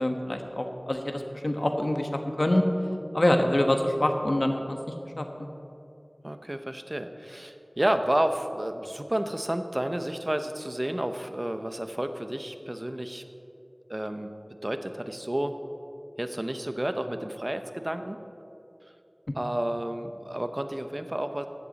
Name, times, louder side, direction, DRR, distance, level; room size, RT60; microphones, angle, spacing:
voice 1, 0.0-2.1 2.4-2.6 3.1-4.8 5.2-5.5, left 1 dB, 55° left, 4 dB, 1.3 m, -25 dB
voice 2, 6.2-13.2 13.9-14.3 14.6-15.5 16.2-18.2 19.3-21.5, right 1 dB, 35° right, 8 dB, 0.8 m, -30 dB
15.5 x 12.5 x 4.2 m, 2.7 s
wide cardioid pair, 40°, 0 cm